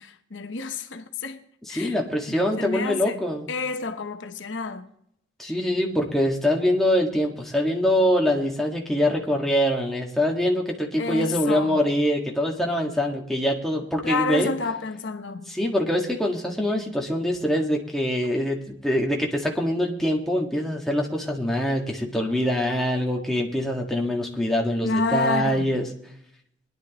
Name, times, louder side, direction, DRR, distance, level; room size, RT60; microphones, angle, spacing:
voice 1, 0.0-1.4 1.7-2.0 2.3-3.2 3.5-4.9 11.0-11.8 14.0-15.5 24.8-25.7, left 4 dB, 90° left, 1.0 m, -29 dB
voice 2, 1.7-3.5 5.4-14.5 15.5-25.9, equal, ahead, 1.7 m, -24 dB
22.0 x 10.5 x 3.0 m
head